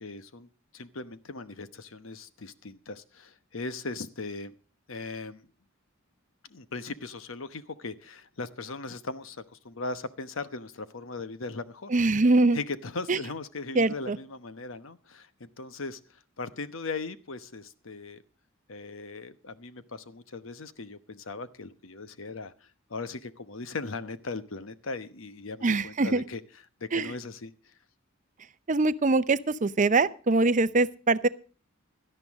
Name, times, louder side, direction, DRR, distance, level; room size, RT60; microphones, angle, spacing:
voice 1, 0.0-4.5 4.9-5.4 6.5-11.9 12.5-18.2 18.7-26.4 26.8-27.5, left 3 dB, 75° left, 12 dB, 1.0 m, -38 dB
voice 2, 11.9-12.6 13.1-13.2 13.7-14.2 25.6-26.2 26.9-27.1 28.7-31.3, right 3 dB, 40° right, 14 dB, 0.6 m, -23 dB
17.5 x 12.5 x 3.6 m, 0.36 s
head